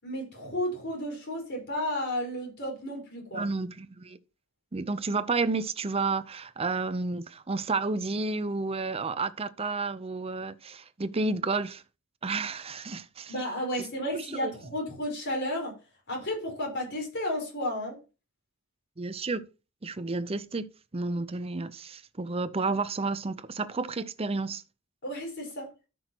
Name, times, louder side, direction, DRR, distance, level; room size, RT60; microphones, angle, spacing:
voice 1, 0.0-3.4 13.3-15.7 16.1-18.0 25.0-25.7, left 1 dB, 50° left, 4.7 m, -32 dB
voice 2, 3.3-4.2 4.7-11.8 12.2-13.3 14.1-14.5 19.0-19.4 19.8-20.7 20.9-24.6, right 3 dB, 25° right, 0.6 m, -31 dB
13.0 x 6.3 x 3.0 m
head